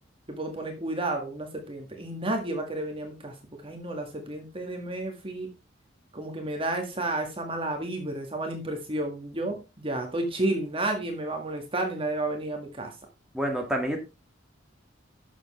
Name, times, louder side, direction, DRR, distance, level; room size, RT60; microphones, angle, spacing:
voice 1, 0.3-5.5 6.1-12.9, right 2 dB, 30° right, 3 dB, 1.9 m, -31 dB
voice 2, 13.3-14.0, equal, 5° right, 0 dB, 2.1 m, -28 dB
11.0 x 7.3 x 3.3 m, 0.26 s
head